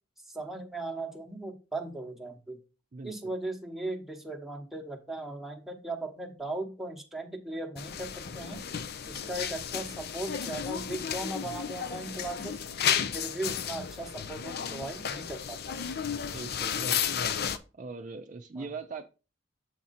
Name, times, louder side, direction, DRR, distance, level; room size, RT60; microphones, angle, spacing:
voice 1, 0.3-2.6 3.0-8.6 9.1-12.6 13.1-15.9 18.6-18.7, right 2 dB, ahead, 1.0 m, -38 dB
voice 2, 2.9-3.3 16.3-17.2 17.7-19.0, right 4 dB, 45° right, 0.5 m, -41 dB
sound 1, 7.8-17.6, left 8 dB, 60° left, 0.5 m, -33 dB
7.3 x 4.2 x 4.1 m
head